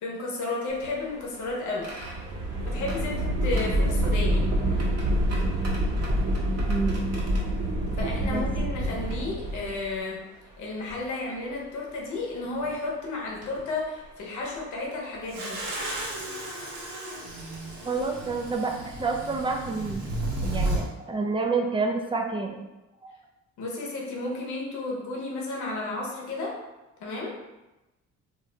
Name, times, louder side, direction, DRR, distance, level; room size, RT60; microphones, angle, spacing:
voice 1, 0.0-1.9 2.6-4.4 8.0-10.2 10.6-15.6 23.6-26.6 27.0-27.4, left 2 dB, 80° left, -2 dB, 0.8 m, -32 dB
sound 1, 0.7-10.0 10.9-11.0 12.4-12.7 13.4-13.6 15.2-15.3 15.7-16.0, right 1 dB, 55° right, 1.0 m, -27 dB
voice 2, 6.7-7.0 8.2-8.4 9.3-9.4 17.9-20.0 20.4-22.6, right 4 dB, 20° right, 2 dB, 0.4 m, -28 dB
sound 2, 15.3-20.8, right 1 dB, 85° right, 0.9 m, -33 dB
2.5 x 2.1 x 3.7 m, 1.0 s
cardioid pair, 90°, 30 cm